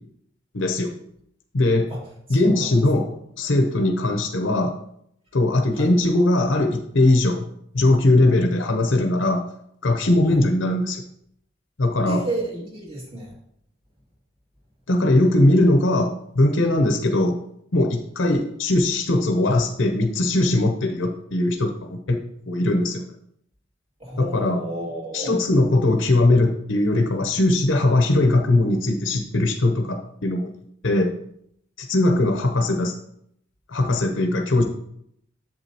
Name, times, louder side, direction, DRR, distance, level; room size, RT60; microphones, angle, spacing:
voice 1, 0.5-0.9 1.5-1.9 2.3-3.1 3.4-4.8 5.3-7.5 7.7-9.5 9.8-11.0 11.8-12.3 14.9-17.4 17.7-23.0 24.2-24.6 25.1-30.5 30.8-31.1 31.8-33.0 33.7-34.6, left 2 dB, 70° left, 5 dB, 0.8 m, -20 dB
voice 2, 2.3-2.7 5.7-5.9 10.3-10.4 12.1-13.3 24.0-25.3, right 1 dB, 30° right, -4 dB, 2.5 m, -31 dB
8.3 x 7.0 x 3.0 m, 0.72 s
head